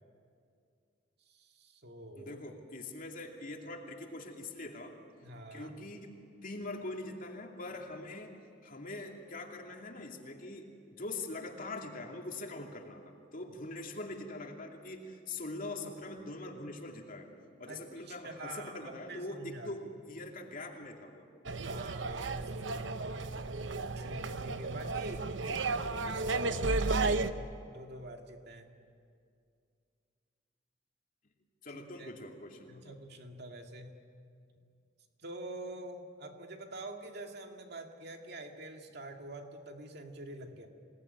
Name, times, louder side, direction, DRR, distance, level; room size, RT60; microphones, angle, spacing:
voice 1, 1.3-2.4 5.2-5.7 17.7-19.7 21.6-23.1 24.0-28.7 31.7-32.1 32.7-34.0 35.2-40.7, right 2 dB, 60° right, 3 dB, 2.3 m, -46 dB
voice 2, 2.2-5.0 5.5-6.1 6.4-8.3 8.6-17.3 17.6-21.3 31.6-32.9, left 2 dB, 50° left, 2 dB, 2.6 m, -43 dB
sound 1, 21.5-27.3, right 3 dB, 75° right, 0.9 m, -33 dB
26.5 x 19.0 x 9.9 m, 2.3 s
head